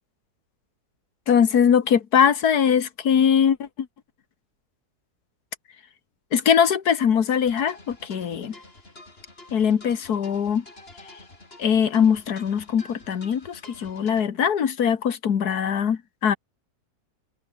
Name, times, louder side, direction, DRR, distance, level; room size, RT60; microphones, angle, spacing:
voice 1, 1.3-3.9 6.3-8.6 9.5-10.6 11.6-16.4, left 8 dB, 80° left, 2.0 m, -21 dB
sound 1, 7.5-14.3, left 2 dB, 40° left, 4.7 m, -48 dB
omnidirectional pair, 1.6 m